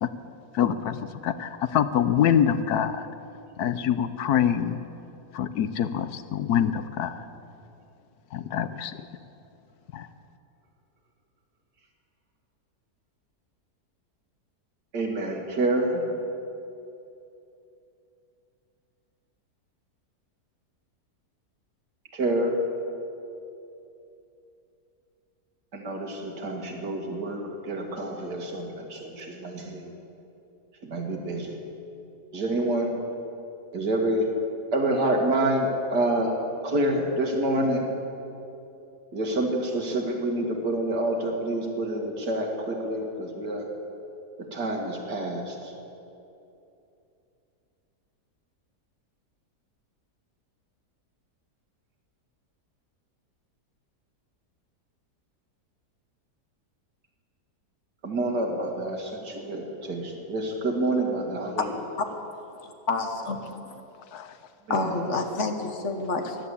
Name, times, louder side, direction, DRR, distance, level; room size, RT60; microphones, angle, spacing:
voice 1, 0.5-3.1 3.6-4.8 5.3-7.2 8.3-9.0 9.9-10.1 64.1-64.4, left 9 dB, 75° left, 12 dB, 1.2 m, -25 dB
voice 2, 14.9-16.1 22.1-22.6 25.7-29.9 30.8-31.7 32.3-33.0 33.7-34.3 34.7-37.9 39.1-43.7 44.5-45.7 58.0-61.7 64.7-64.9, right 1 dB, 85° right, 1 dB, 2.6 m, -27 dB
voice 3, 62.6-63.4 63.7-63.8 64.7-66.4, left 3 dB, 50° left, 6 dB, 1.4 m, -28 dB
15.0 x 11.0 x 8.3 m, 2.8 s
omnidirectional pair, 1.7 m